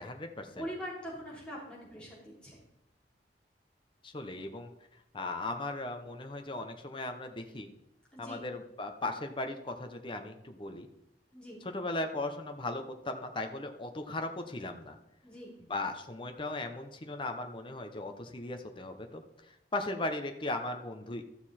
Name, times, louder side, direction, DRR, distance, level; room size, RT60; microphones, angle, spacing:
voice 1, 0.0-0.5 4.0-4.7 5.1-7.7 8.2-10.9 11.6-15.0 15.7-19.2 19.7-21.2, left 2 dB, 30° left, 5 dB, 0.8 m, -37 dB
voice 2, 0.5-2.6 8.1-8.4 11.3-11.6 15.2-15.5, equal, 5° left, -7 dB, 3.9 m, -42 dB
13.0 x 6.9 x 4.3 m, 0.83 s
head